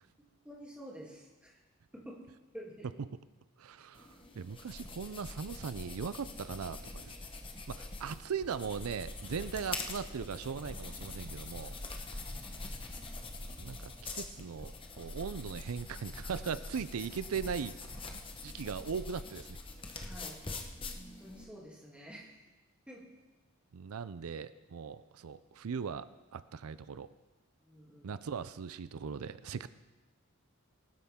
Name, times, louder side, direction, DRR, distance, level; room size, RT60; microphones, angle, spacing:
voice 1, 0.4-1.5 1.9-2.2 2.5-2.9 12.1-12.9 20.0-20.4 21.0-22.3 22.9-23.0 27.6-28.1, equal, 5° right, -4 dB, 2.8 m, -49 dB
voice 2, 3.6-4.1 4.4-7.2 7.7-11.7 13.6-17.8 18.4-19.6 23.7-27.1 28.0-29.7, right 6 dB, 85° right, 14 dB, 0.5 m, -39 dB
sound 1, 3.9-21.4, left 2 dB, 25° left, 1.1 m, -44 dB
20.0 x 12.5 x 3.7 m, 1.1 s
head